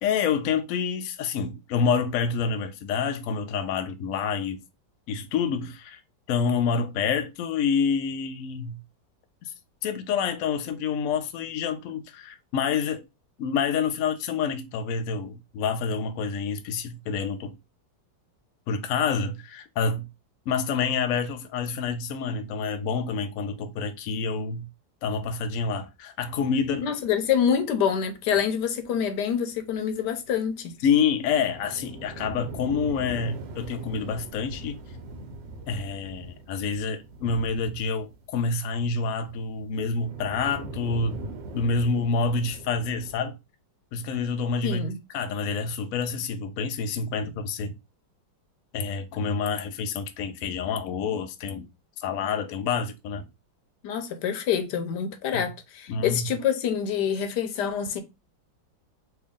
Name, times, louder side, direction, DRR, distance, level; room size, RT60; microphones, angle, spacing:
voice 1, 0.0-4.6 5.1-6.0 6.3-8.8 9.4-9.5 9.8-13.1 13.4-17.6 18.7-20.1 20.5-24.7 25.0-26.9 30.8-34.8 35.7-41.2 41.5-43.4 43.9-47.7 48.7-51.7 52.0-53.2 55.9-56.3, left 5 dB, 85° left, 0.7 m, -27 dB
sound 1, 26.3-29.3 29.6-29.7 29.9-30.0 30.3-30.4 30.8-38.5 38.9-43.2, right 2 dB, 70° right, 1.4 m, -41 dB
voice 2, 26.8-30.7 44.6-45.0 53.8-58.0, left 8 dB, 70° left, 1.2 m, -26 dB
3.4 x 2.6 x 3.5 m
omnidirectional pair, 2.1 m